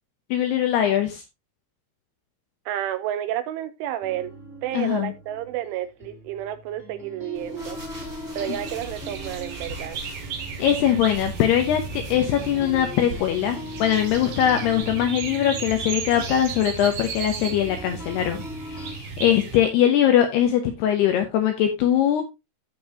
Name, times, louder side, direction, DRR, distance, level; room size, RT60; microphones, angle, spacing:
voice 1, 0.3-1.2 4.7-5.1 10.6-22.2, left 10 dB, 75° left, 2.5 m, -21 dB
voice 2, 2.7-4.3 4.6-7.8 8.4-10.0, right 12 dB, 80° right, 3.2 m, -31 dB
sound 1, 4.0-11.8 12.1-18.9, left 2 dB, 20° left, 1.9 m, -40 dB
sound 2, 7.3-14.9, right 1 dB, 20° right, 2.9 m, -42 dB
sound 3, 8.4-19.6, right 6 dB, 60° right, 3.0 m, -35 dB
15.0 x 5.3 x 2.8 m
omnidirectional pair, 5.7 m